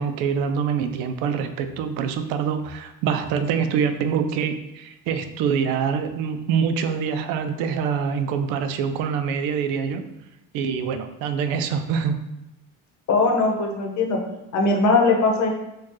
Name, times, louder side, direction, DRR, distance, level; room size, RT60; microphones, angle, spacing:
voice 1, 0.0-10.0 10.5-12.2, right 6 dB, 80° right, 9 dB, 0.5 m, -25 dB
voice 2, 13.1-14.2 14.5-15.5, left 3 dB, 55° left, 2 dB, 0.9 m, -20 dB
4.3 x 2.3 x 3.0 m, 0.89 s
cardioid pair, 95°, 34 cm